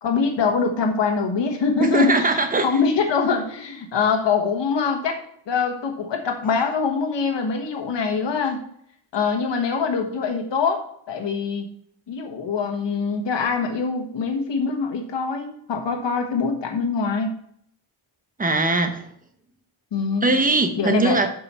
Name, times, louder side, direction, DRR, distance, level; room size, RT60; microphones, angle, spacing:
voice 1, 0.0-5.2 5.5-8.6 9.1-11.7 12.1-17.4 19.9-20.3 20.7-21.2, left 5 dB, 55° left, 4 dB, 1.5 m, -24 dB
voice 2, 1.8-2.7 18.4-19.1 20.2-21.3, right 2 dB, 15° right, 6 dB, 0.8 m, -21 dB
7.4 x 5.4 x 5.5 m, 0.65 s
wide cardioid pair, 165°, 50 cm